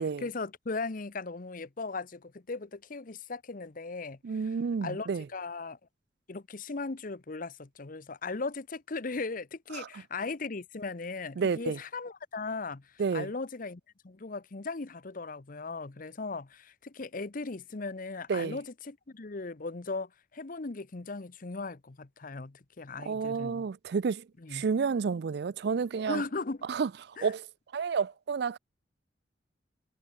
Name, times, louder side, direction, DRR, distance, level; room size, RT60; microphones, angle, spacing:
voice 1, 0.2-4.2 4.8-5.8 6.3-12.9 13.1-23.7 24.4-24.7 26.1-26.7 27.2-27.3, left 3 dB, 50° left, 0.8 m, -38 dB
voice 2, 4.2-5.3 9.7-9.9 11.4-11.8 13.0-13.3 18.3-18.6 23.1-24.3 24.5-26.2 26.7-27.5 27.7-28.6, right 5 dB, 65° right, 0.4 m, -30 dB
head